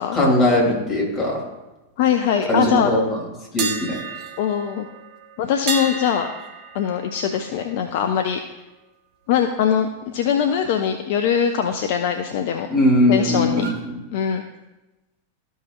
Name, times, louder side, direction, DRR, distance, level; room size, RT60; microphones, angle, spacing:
voice 1, 0.1-1.4 2.5-3.2 3.5-4.0 12.7-14.0, left 1 dB, 25° left, -3 dB, 2.8 m, -19 dB
voice 2, 2.0-2.9 4.4-4.9 5.4-6.3 6.7-8.4 9.3-12.7 13.1-13.7 14.1-14.4, left 8 dB, 50° left, 6 dB, 0.5 m, -22 dB
sound 1, 3.6-9.5 9.8-10.0 13.5-13.9, right 4 dB, 40° right, 1.0 m, -33 dB
13.5 x 5.5 x 2.4 m, 1.1 s
figure-of-eight pair, 90°, 0 cm